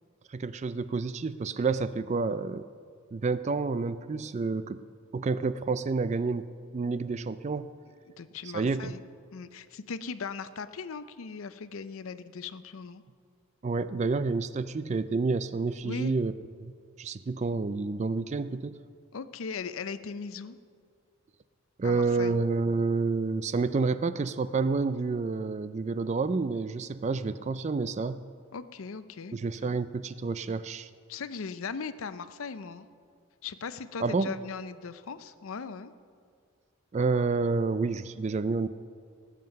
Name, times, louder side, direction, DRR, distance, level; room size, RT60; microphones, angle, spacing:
voice 1, 0.3-2.6 3.1-4.8 5.1-6.5 6.7-7.7 8.5-9.0 13.6-16.3 16.6-16.7 17.0-18.8 21.8-28.2 29.3-30.9 34.0-34.3 36.9-38.7, right 4 dB, 30° right, 14 dB, 0.3 m, -29 dB
voice 2, 8.2-9.0 9.3-13.0 15.8-16.1 19.1-20.6 21.8-22.4 28.5-29.3 31.1-32.9 33.4-35.9, left 5 dB, 70° left, 13 dB, 0.5 m, -39 dB
18.0 x 7.6 x 5.3 m, 2.2 s
head